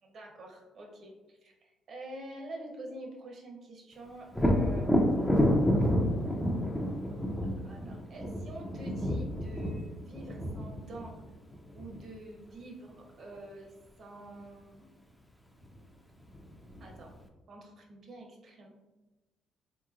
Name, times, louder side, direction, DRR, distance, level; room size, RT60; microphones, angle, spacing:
voice 1, 0.0-5.5 7.4-11.1 11.7-13.7 14.0-14.9 16.8-17.1 17.5-18.7, right 1 dB, 55° right, 0 dB, 0.9 m, -47 dB
Thunder, 4.3-12.0 15.6-15.7 16.2-17.1, equal, 5° left, 0.5 m, -29 dB
3.5 x 3.0 x 2.4 m, 1.1 s
cardioid pair, 85°, 0 cm